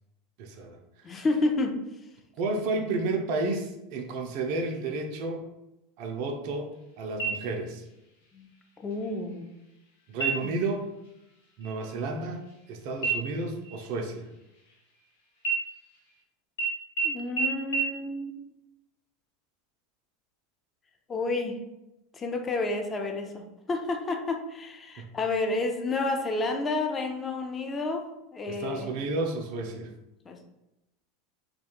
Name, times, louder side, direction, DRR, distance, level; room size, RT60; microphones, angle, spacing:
voice 1, 0.4-0.8 1.2-1.3 2.4-5.4 6.0-7.8 10.1-10.8 11.6-14.2 25.0-25.1 28.5-29.9, right 3 dB, 60° right, 3 dB, 0.3 m, -32 dB
voice 2, 1.0-1.8 8.3-8.5 8.8-9.5 10.4-10.5 17.0-18.6 21.1-21.6 22.1-28.9 30.3-30.4, left 2 dB, 25° left, 4 dB, 0.4 m, -30 dB
sound 1, 7.2-7.9 8.3-8.4 8.9-9.4 10.1-10.7 11.0-11.3 11.6-12.7 13.0-15.0 15.4-16.2 16.6-16.7 17.0-17.1 17.4-17.5 17.7-17.8, right 5 dB, 75° left, 0.6 m, -32 dB
2.3 x 2.2 x 2.8 m, 0.92 s
hypercardioid pair, 90°, 0 cm